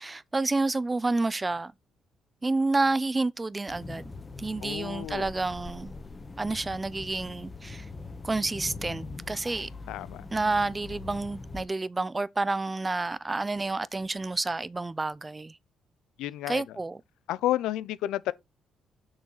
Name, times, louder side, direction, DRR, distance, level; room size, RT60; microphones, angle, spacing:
voice 1, 0.0-1.7 2.4-4.1 4.4-5.9 6.4-7.9 8.2-9.7 10.3-15.6 16.5-17.0, right 3 dB, 20° right, 0.5 m, -29 dB
sound 1, 3.7-11.6, left 3 dB, 25° left, 1.4 m, -42 dB
voice 2, 4.6-5.3 9.9-10.3 16.2-16.6 17.3-18.3, left 14 dB, 90° left, 0.5 m, -31 dB
6.3 x 6.3 x 4.0 m
cardioid pair, 85°, 0 cm